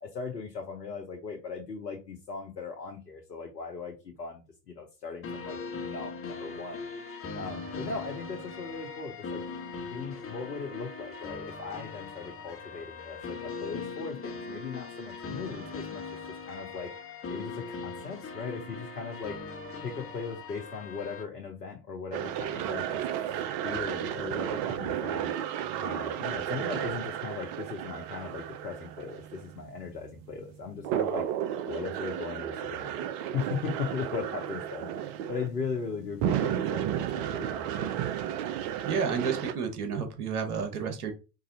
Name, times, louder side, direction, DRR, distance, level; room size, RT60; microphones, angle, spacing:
voice 1, 0.0-6.8 7.3-9.4 9.9-17.0 17.3-19.4 19.8-23.1 23.6-25.3 25.8-31.3 31.6-34.9 35.3-37.9, left 5 dB, 85° left, 2 dB, 0.9 m, -38 dB
sound 1, 5.2-21.2, left 4 dB, 30° left, 1.4 m, -40 dB
sound 2, 22.1-39.5, right 10 dB, 50° right, 0.7 m, -33 dB
voice 2, 38.9-41.1, right 6 dB, 65° right, 6 dB, 1.2 m, -31 dB
4.7 x 2.6 x 4.0 m, 0.30 s
figure-of-eight pair, 70°, 48 cm